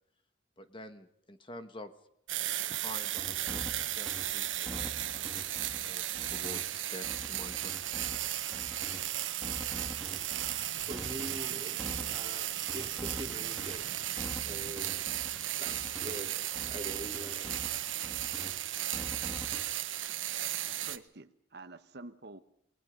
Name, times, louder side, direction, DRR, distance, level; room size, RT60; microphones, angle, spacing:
voice 1, 0.6-1.9 2.7-5.3 5.8-7.7, left 2 dB, 25° left, 9 dB, 1.6 m, -48 dB
sound 1, 2.3-21.0, right 13 dB, 85° right, 1.4 m, -35 dB
sound 2, 2.9-9.1 9.4-16.3 16.5-18.6 18.9-19.6, equal, ahead, 2.5 m, -45 dB
voice 2, 10.7-14.1 14.4-15.0 15.6-16.4 16.7-17.6, right 1 dB, 25° right, 3 dB, 3.5 m, -44 dB
voice 3, 20.4-22.4, right 2 dB, 55° right, 10 dB, 1.1 m, -49 dB
29.5 x 20.5 x 5.3 m, 0.72 s
head